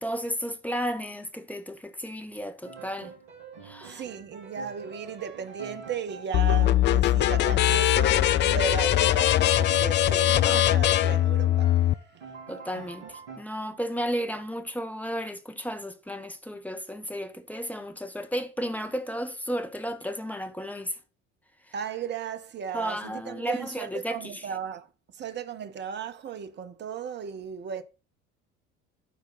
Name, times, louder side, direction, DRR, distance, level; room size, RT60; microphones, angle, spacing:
voice 1, 0.0-3.1 3.6-4.0 10.4-10.6 12.5-20.9 22.7-24.5, equal, 5° left, 1.2 m, -33 dB
Piano, 2.6-10.7 11.0-13.4, right 5 dB, 70° right, 2.7 m, -44 dB
voice 2, 3.8-11.7 12.8-12.9 21.7-27.8, right 7 dB, 30° right, 1.0 m, -36 dB
sound 1, 6.3-11.9, left 13 dB, 30° left, 0.4 m, -21 dB
12.0 x 4.5 x 4.1 m
figure-of-eight pair, 60°, 35 cm